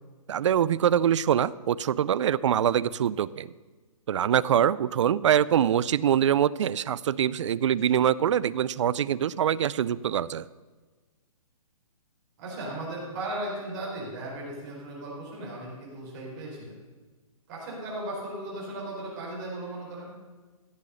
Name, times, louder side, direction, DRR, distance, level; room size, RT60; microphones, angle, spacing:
voice 1, 0.3-3.5 4.1-10.4, right 9 dB, 55° right, 20 dB, 0.4 m, -24 dB
voice 2, 12.4-16.7 17.5-20.1, right 1 dB, 30° right, -4 dB, 4.4 m, -36 dB
15.0 x 6.9 x 6.4 m, 1.3 s
hypercardioid pair, 160°, 19 cm